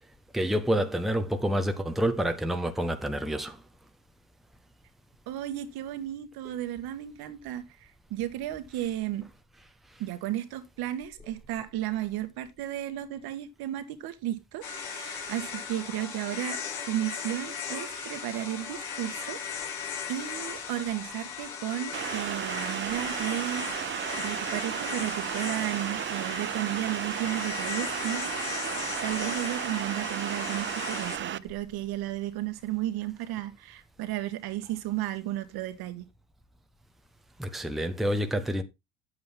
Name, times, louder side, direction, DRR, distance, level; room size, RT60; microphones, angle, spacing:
voice 1, 0.3-3.6 37.4-38.6, equal, ahead, 1.2 m, -28 dB
voice 2, 5.3-9.3 10.0-16.6 16.9-19.8 20.1-28.4 29.0-36.0, right 13 dB, 55° right, 1.7 m, -34 dB
sound 1, 14.6-31.2, left 6 dB, 70° left, 4.4 m, -37 dB
sound 2, 21.9-31.4, right 11 dB, 25° right, 0.6 m, -34 dB
9.5 x 8.6 x 3.6 m
hypercardioid pair, 80°, 45 cm